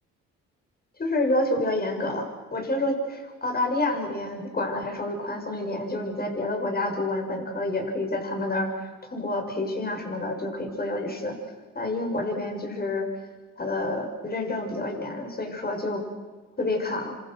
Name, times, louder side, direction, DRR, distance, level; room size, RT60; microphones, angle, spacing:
voice 1, 1.0-11.4 11.8-13.1 13.6-16.0 16.6-17.2, left 2 dB, 30° left, 3 dB, 6.9 m, -28 dB
27.5 x 26.5 x 6.6 m, 1.4 s
cardioid pair, 90°, 30 cm